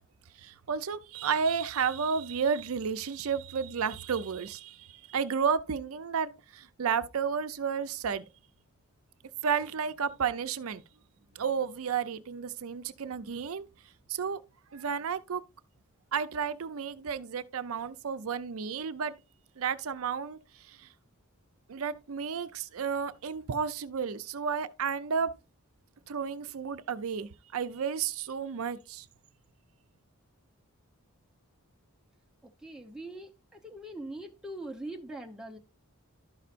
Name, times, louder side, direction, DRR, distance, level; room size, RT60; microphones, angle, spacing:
voice 1, 0.4-8.2 9.4-10.8 11.3-13.7 14.1-14.4 14.7-15.4 16.1-19.1 19.6-20.9 21.7-25.3 26.1-29.1, right 6 dB, 70° right, 0.5 m, -32 dB
voice 2, 32.4-35.6, right 1 dB, 5° right, 0.7 m, -42 dB
12.0 x 5.6 x 2.5 m
head